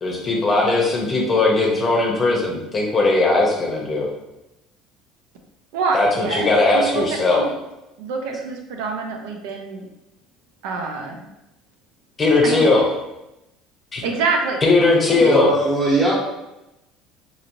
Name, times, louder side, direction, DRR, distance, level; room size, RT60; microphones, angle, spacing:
voice 1, 0.0-4.1 5.9-7.4 12.2-12.8 13.9-14.0 14.6-15.5, left 3 dB, 20° left, -1 dB, 0.7 m, -18 dB
voice 2, 5.7-7.5 8.0-9.9 10.6-11.2 12.4-12.9 14.0-14.6 15.1-15.3, right 4 dB, 85° right, 2 dB, 0.5 m, -26 dB
voice 3, 15.2-16.1, right 1 dB, 20° right, -4 dB, 1.1 m, -20 dB
4.0 x 2.9 x 2.6 m, 0.94 s
cardioid pair, 150°, 0 cm